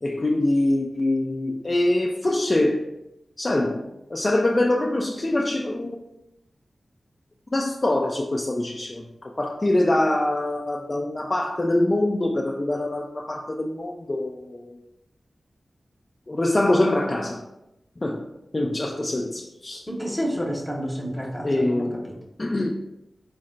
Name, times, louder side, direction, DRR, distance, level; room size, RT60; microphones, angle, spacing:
voice 1, 0.0-2.9 3.4-6.0 7.5-14.8 16.3-17.4 18.0-19.8 21.4-22.1 22.4-22.7, left 1 dB, 40° left, 0 dB, 0.3 m, -24 dB
voice 2, 19.9-22.1, equal, 10° left, -1 dB, 0.8 m, -29 dB
3.9 x 2.1 x 3.8 m, 0.91 s
cardioid pair, 45°, 0 cm